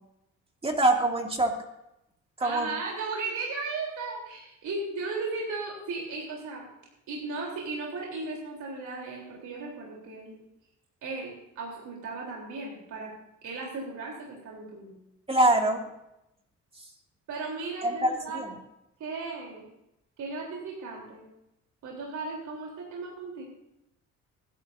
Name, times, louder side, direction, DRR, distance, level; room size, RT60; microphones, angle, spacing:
voice 1, 0.6-1.6 2.4-2.7 15.3-15.9 16.8-16.9 17.8-18.5, right 1 dB, 20° right, 2 dB, 2.4 m, -24 dB
voice 2, 2.4-6.7 7.1-10.4 11.0-13.1 13.4-15.0 17.3-18.4 19.0-19.7 20.2-21.3 21.8-23.4, right 3 dB, 75° right, -3 dB, 3.6 m, -36 dB
20.5 x 11.5 x 2.7 m, 0.86 s
cardioid pair, 90°, 30 cm